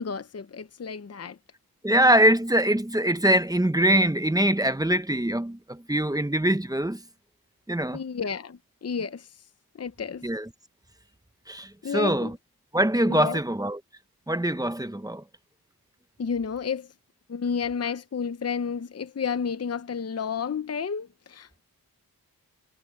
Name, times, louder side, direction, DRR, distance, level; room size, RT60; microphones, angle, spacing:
voice 1, 0.0-1.4 7.9-9.3 9.8-10.2 11.8-12.3 13.1-13.4 16.2-16.9 17.3-21.6, left 6 dB, 40° left, 0.8 m, -31 dB
voice 2, 1.8-7.0 7.7-8.0 10.2-10.5 11.5-12.4 12.7-13.8 14.3-15.2, right 1 dB, 10° right, 1.0 m, -23 dB
wide cardioid pair, 95°, 38 cm